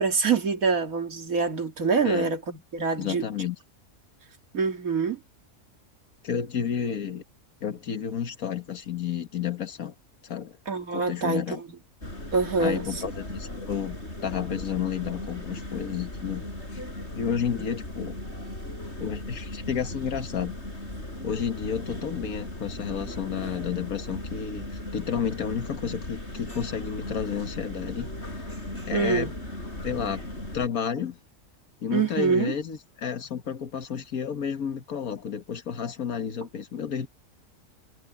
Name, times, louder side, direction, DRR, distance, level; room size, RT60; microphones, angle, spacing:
voice 1, 0.0-3.3 4.5-5.2 10.7-11.6 12.3-12.8 28.9-29.3 31.9-32.5, right 4 dB, 85° right, 2.6 m, -25 dB
voice 2, 3.0-3.6 6.2-7.2 7.6-9.9 10.2-10.6 10.9-11.6 12.6-14.0 14.2-16.4 16.7-16.8 17.1-18.2 19.0-20.5 21.2-28.5 28.9-29.3 29.8-30.2 30.5-31.2 31.8-37.1, left 8 dB, 90° left, 1.9 m, -31 dB
sound 1, 12.0-30.7, left 1 dB, 50° left, 7.8 m, -37 dB
omnidirectional pair, 1.4 m